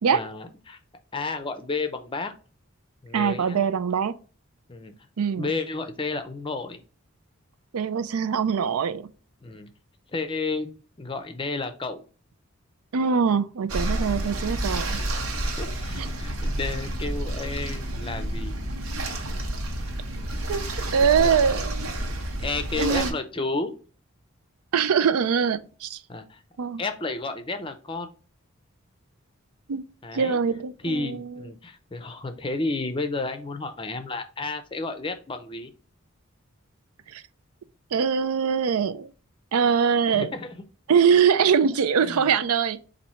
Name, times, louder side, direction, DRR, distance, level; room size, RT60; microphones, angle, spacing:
voice 1, 0.1-0.8 1.1-2.3 3.0-3.6 4.7-4.9 5.4-6.8 9.4-9.7 10.1-10.7 11.0-12.0 14.9-18.6 21.2-21.4 22.4-23.8 26.1-26.4 26.8-28.1 30.0-30.4 30.8-35.7 40.1-40.6 42.0-42.3, left 3 dB, 25° left, 0.5 m, -32 dB
voice 2, 3.1-4.1 5.2-5.5 7.7-9.0 12.9-15.0 16.0-16.1 20.5-20.6 20.9-21.9 22.7-23.2 24.7-26.0 26.6-26.8 29.7-29.8 30.1-31.4 37.1-37.2 37.9-39.1 39.5-40.3 40.9-42.8, right 6 dB, 90° right, 0.4 m, -23 dB
sound 1, 13.7-23.1, right 1 dB, 75° right, 0.9 m, -30 dB
4.2 x 2.7 x 4.2 m
head